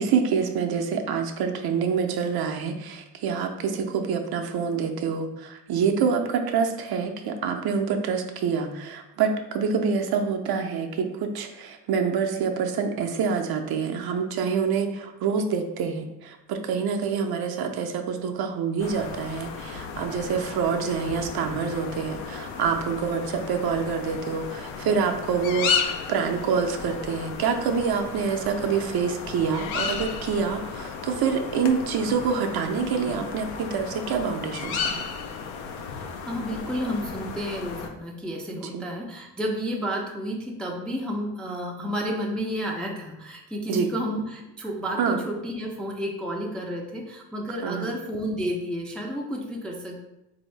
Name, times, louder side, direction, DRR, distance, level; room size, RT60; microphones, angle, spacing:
voice 1, 0.0-34.9 38.7-38.8 43.7-43.9 45.0-45.2 47.6-47.9, right 6 dB, 50° right, 4 dB, 0.5 m, -26 dB
sound 1, 18.8-37.9, left 6 dB, 70° left, 0.6 m, -34 dB
voice 2, 35.8-50.0, equal, ahead, -1 dB, 0.4 m, -31 dB
3.7 x 2.7 x 3.2 m, 0.93 s
supercardioid pair, 80°, 49 cm